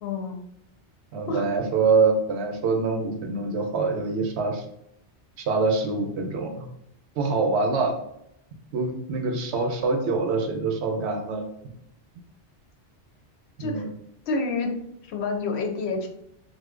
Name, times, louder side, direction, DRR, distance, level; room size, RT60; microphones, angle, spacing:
voice 1, 0.0-0.4 1.3-1.5 13.6-13.8 14.3-14.7 15.0-16.1, left 3 dB, 70° left, 3 dB, 0.8 m, -28 dB
voice 2, 1.1-4.7 5.4-6.7 7.2-7.9 8.7-11.4 13.6-13.9, right 4 dB, 75° right, 3 dB, 0.8 m, -25 dB
2.6 x 2.1 x 3.6 m, 0.78 s
omnidirectional pair, 1.2 m